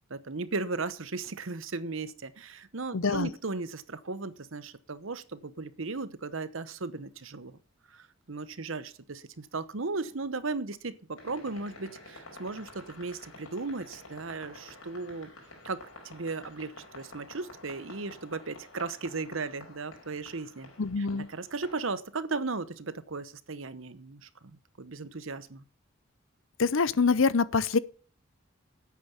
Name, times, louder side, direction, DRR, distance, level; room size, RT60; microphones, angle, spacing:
voice 1, 0.1-7.6 7.9-15.3 15.6-20.7 21.0-25.6, right 3 dB, 65° right, 1.0 m, -36 dB
voice 2, 2.9-3.3 20.8-21.3 26.6-27.8, left 4 dB, 65° left, 0.7 m, -25 dB
sound 1, 11.2-21.9, left 2 dB, 85° left, 4.7 m, -50 dB
9.6 x 8.6 x 8.6 m
head